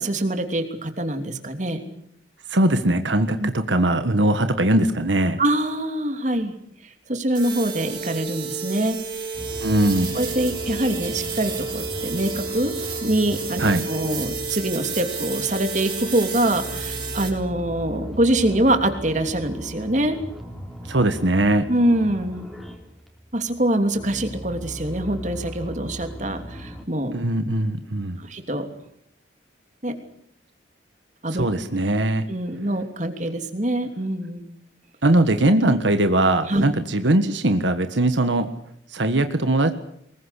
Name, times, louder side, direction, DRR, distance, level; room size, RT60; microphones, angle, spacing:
voice 1, 0.0-1.8 3.4-3.5 5.4-6.5 7.1-9.0 10.1-12.7 13.0-13.6 13.9-20.2 21.7-22.5 23.3-27.1 28.2-28.7 29.8-30.0 31.2-31.4 32.3-34.4 36.5-36.6, right 1 dB, 40° right, 6 dB, 3.0 m, -24 dB
voice 2, 2.5-5.4 9.6-10.2 13.6-13.8 20.9-21.6 27.1-28.2 31.4-32.2 35.0-38.5 38.9-39.7, right 1 dB, 85° right, 8 dB, 1.5 m, -20 dB
sound 1, 7.3-17.3, right 5 dB, 25° right, 5.3 m, -31 dB
sound 2, 9.3-26.9, equal, ahead, 3.7 m, -38 dB
24.0 x 21.5 x 8.3 m, 0.69 s
head